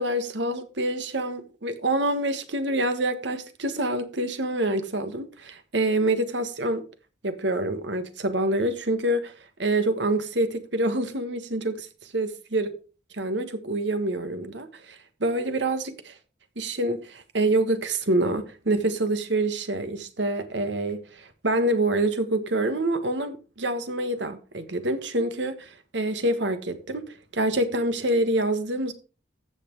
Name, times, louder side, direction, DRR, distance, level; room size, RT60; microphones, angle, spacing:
voice 1, 0.0-6.8 7.2-9.3 9.6-11.9 12.1-12.7 13.1-16.1 16.5-28.9, right 1 dB, 75° right, 1.5 m, -26 dB
15.0 x 6.0 x 4.6 m
head